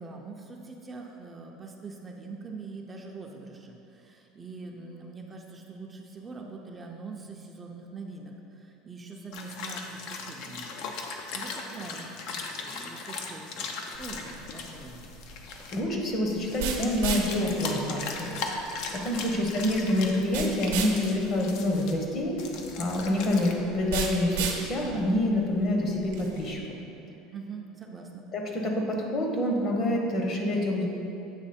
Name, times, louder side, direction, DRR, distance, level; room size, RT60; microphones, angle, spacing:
voice 1, 0.0-10.9 11.3-15.1 19.3-19.7 27.3-28.3, right 4 dB, 20° right, 1 dB, 0.5 m, -43 dB
sound 1, 9.3-15.8 16.3-21.9 22.4-23.5, left 4 dB, 65° left, 0.6 m, -38 dB
sound 2, 13.9-26.5, right 5 dB, 90° right, 0.7 m, -37 dB
voice 2, 15.7-18.4 18.9-22.4 22.8-26.6 28.3-30.9, left 1 dB, 40° left, 1 dB, 1.0 m, -27 dB
8.1 x 3.0 x 4.2 m, 2.8 s
supercardioid pair, 115°, 0 cm